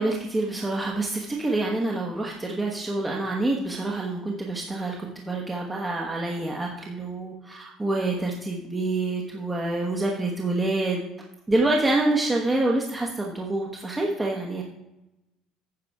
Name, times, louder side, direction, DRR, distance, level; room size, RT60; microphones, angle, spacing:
voice 1, 0.0-11.0 11.5-14.6, right 2 dB, 15° right, -1 dB, 1.1 m, -27 dB
9.6 x 6.6 x 4.8 m, 0.94 s
cardioid pair, 130°, 0 cm